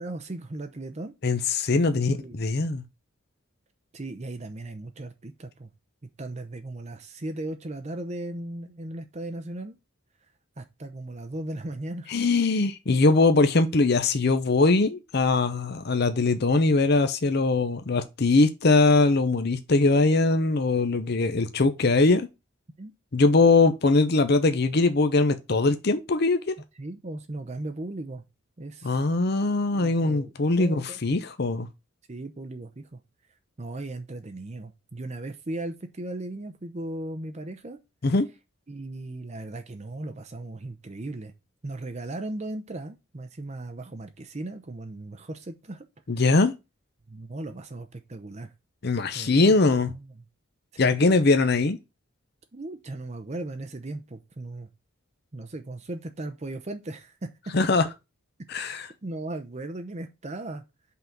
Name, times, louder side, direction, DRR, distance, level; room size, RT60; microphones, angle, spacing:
voice 1, 0.0-1.1 2.0-2.4 3.9-5.7 6.2-9.8 10.6-12.1 22.8-22.9 26.8-28.2 28.6-29.0 29.7-31.0 32.1-33.0 33.6-37.8 38.7-41.3 41.6-45.8 47.1-48.5 49.1-50.1 50.7-50.9 52.5-54.7 55.3-57.3 58.6-60.6, right 2 dB, 35° right, 0.6 m, -37 dB
voice 2, 1.2-2.8 12.1-22.3 23.1-26.5 28.8-31.7 38.0-38.3 46.1-46.5 48.8-49.9 50.8-51.8 57.5-57.9 58.5-58.9, left 3 dB, 50° left, 0.6 m, -21 dB
5.6 x 3.8 x 5.8 m
head